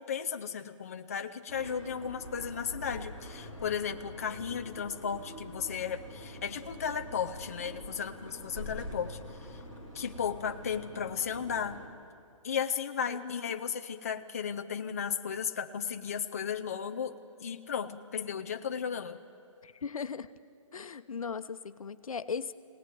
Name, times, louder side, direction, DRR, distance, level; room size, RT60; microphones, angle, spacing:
voice 1, 0.0-9.6 9.9-11.8 12.4-19.2, left 7 dB, 25° left, 6 dB, 0.5 m, -35 dB
sound 1, 1.5-11.9, equal, 20° right, 3.4 m, -45 dB
voice 2, 13.1-13.5 19.6-20.3 20.7-22.5, left 6 dB, 90° left, 11 dB, 0.9 m, -38 dB
24.0 x 18.0 x 9.3 m, 2.5 s
hypercardioid pair, 175°, 17 cm